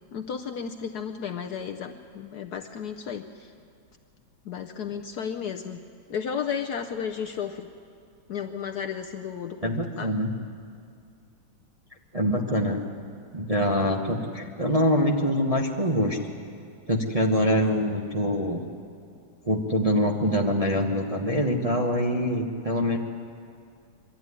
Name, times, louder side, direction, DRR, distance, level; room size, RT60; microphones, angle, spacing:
voice 1, 0.1-3.5 4.5-5.8 6.1-7.7 8.3-10.1, left 7 dB, 65° left, 5 dB, 1.1 m, -33 dB
voice 2, 9.6-10.3 12.1-12.8 13.3-16.2 16.9-18.6 19.4-23.0, equal, 25° right, 0 dB, 0.8 m, -24 dB
22.5 x 13.0 x 9.6 m, 2.3 s
omnidirectional pair, 2.2 m